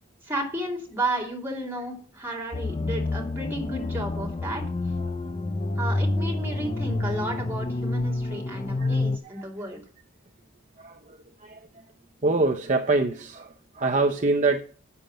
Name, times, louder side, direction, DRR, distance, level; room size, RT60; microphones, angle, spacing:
voice 1, 0.2-4.6 5.8-9.8, right 1 dB, 10° right, 2.9 m, -32 dB
sound 1, 2.5-9.2, left 2 dB, 25° left, 0.5 m, -28 dB
voice 2, 10.8-11.2 11.4-11.6 12.2-14.6, right 3 dB, 35° right, 0.6 m, -25 dB
8.8 x 7.0 x 7.7 m
head